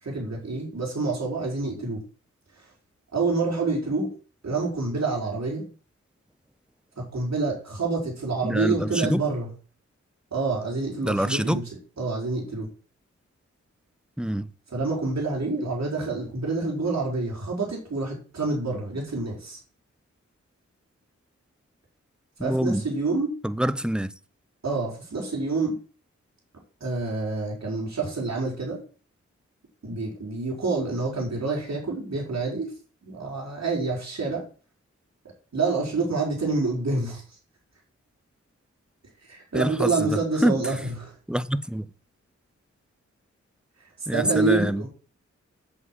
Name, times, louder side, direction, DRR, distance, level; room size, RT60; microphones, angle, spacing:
voice 1, 0.0-2.0 2.6-2.7 3.1-4.1 4.4-5.6 7.0-9.5 10.3-11.6 12.0-12.7 14.7-19.6 22.4-23.3 24.6-25.8 26.8-28.8 29.8-32.7 33.0-34.4 35.5-37.2 39.2-40.7 41.0-41.1 44.1-44.9, right 3 dB, 65° right, 5.1 m, -27 dB
voice 2, 8.4-9.2 11.0-11.6 14.2-14.5 22.4-22.9 23.4-24.1 39.5-40.8 41.3-41.9 44.1-44.8, right 1 dB, 5° right, 0.8 m, -26 dB
8.0 x 7.7 x 7.5 m
cardioid pair, 65°, 29 cm